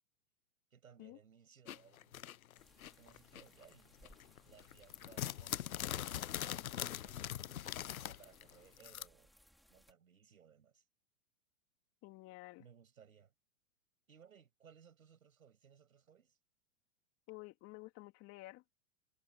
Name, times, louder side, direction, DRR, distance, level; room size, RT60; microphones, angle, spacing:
voice 1, 0.7-2.2 2.8-7.2 8.0-9.3 9.7-10.8 12.6-13.3 14.1-16.4, right 7 dB, 85° right, 6.8 m, -63 dB
sound 1, 1.7-3.7 4.1-9.1, left 11 dB, 85° left, 0.7 m, -42 dB
sound 2, 2.6-9.9, equal, ahead, 4.3 m, -67 dB
voice 2, 12.0-12.6 17.3-18.6, left 21 dB, 35° left, 3.0 m, -52 dB
hypercardioid pair, 115°, 41 cm